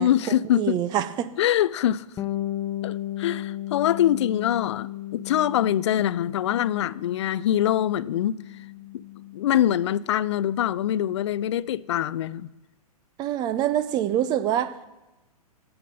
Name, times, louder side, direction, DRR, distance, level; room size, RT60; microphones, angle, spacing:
voice 1, 0.0-0.8 1.4-2.1 2.8-8.4 9.3-12.5, left 11 dB, 50° left, 0.4 m, -24 dB
voice 2, 0.6-1.3 13.2-14.9, right 11 dB, 20° right, 0.5 m, -25 dB
Bass guitar, 2.2-11.8, left 14 dB, 15° left, 0.7 m, -36 dB
15.5 x 5.8 x 5.2 m
figure-of-eight pair, 110°, 19 cm